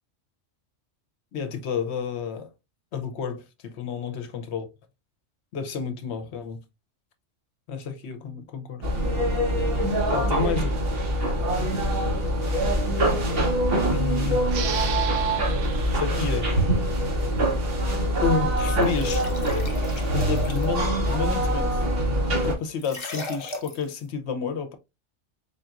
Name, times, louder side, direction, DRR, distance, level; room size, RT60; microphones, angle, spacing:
voice 1, 1.3-2.5 2.9-4.7 5.5-6.6 7.7-8.8 10.1-10.7 13.9-14.5 15.9-16.5 18.2-19.2 20.0-21.8 22.4-24.8, left 6 dB, 65° left, 0.9 m, -30 dB
sound 1, 8.8-22.5, right 1 dB, 50° right, 1.2 m, -24 dB
sound 2, 14.5-17.7, right 7 dB, 80° right, 1.0 m, -37 dB
sound 3, 18.7-20.8 22.8-23.9, left 1 dB, 30° left, 0.6 m, -37 dB
4.0 x 3.9 x 2.4 m
omnidirectional pair, 1.3 m